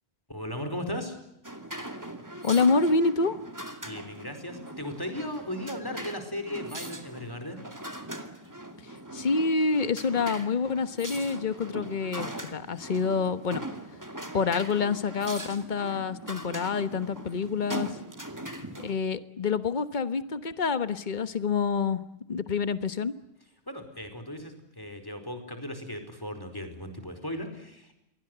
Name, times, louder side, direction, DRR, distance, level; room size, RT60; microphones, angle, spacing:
voice 1, 0.3-1.2 3.8-7.6 23.7-28.0, left 1 dB, 20° left, 7 dB, 4.7 m, -37 dB
sound 1, 1.4-19.0, right 1 dB, 15° right, 2.3 m, -40 dB
voice 2, 2.4-3.4 9.1-13.6 14.3-17.9 18.8-22.0 22.3-23.1, left 4 dB, 45° left, 12 dB, 1.4 m, -27 dB
28.5 x 23.0 x 8.0 m, 0.85 s
omnidirectional pair, 1.1 m